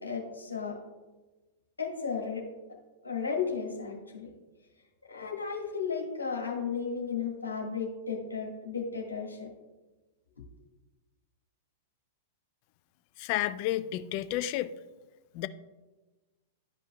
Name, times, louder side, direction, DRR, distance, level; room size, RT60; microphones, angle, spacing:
voice 1, 0.0-0.8 1.8-2.5 3.0-4.3 5.1-9.5, left 5 dB, 85° left, -1 dB, 1.5 m, -34 dB
voice 2, 13.2-14.7 15.3-15.5, left 14 dB, 45° left, 14 dB, 0.3 m, -31 dB
11.5 x 5.2 x 2.2 m, 1.2 s
figure-of-eight pair, 100°, 0 cm